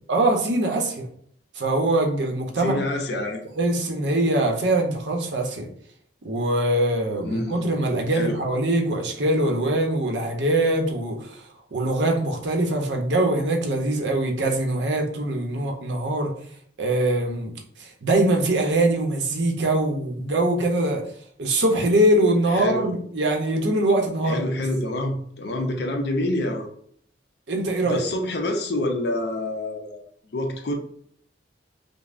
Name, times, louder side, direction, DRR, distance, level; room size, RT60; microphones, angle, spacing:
voice 1, 0.1-1.1 1.5-2.8 3.1-3.2 3.6-5.7 6.2-16.3 16.8-17.5 17.8-21.0 21.4-24.4 27.5-28.0, right 1 dB, 75° right, 2 dB, 0.7 m, -23 dB
voice 2, 2.6-3.4 7.2-7.8 8.1-8.4 22.5-22.8 24.3-26.7 27.8-30.7, left 1 dB, 65° left, 3 dB, 0.6 m, -27 dB
5.2 x 2.0 x 2.5 m, 0.64 s
head